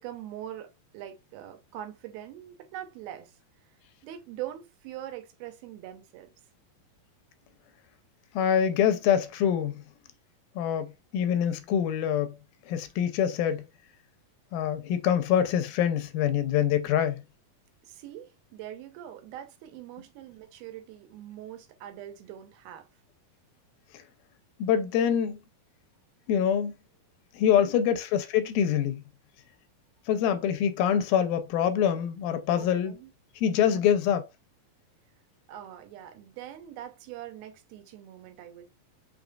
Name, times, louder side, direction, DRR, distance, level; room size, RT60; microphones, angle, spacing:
voice 1, 0.0-3.3 4.0-6.3 17.8-22.9 27.5-27.8 32.5-33.1 33.6-33.8 35.5-38.7, right 12 dB, 85° right, 2.7 m, -43 dB
voice 2, 8.3-9.8 10.6-12.4 12.7-13.7 14.5-17.2 23.9-24.0 24.6-25.4 26.3-26.7 27.3-29.0 30.1-32.9 33.4-34.3, left 9 dB, 80° left, 2.3 m, -25 dB
6.1 x 3.3 x 2.3 m
omnidirectional pair, 4.2 m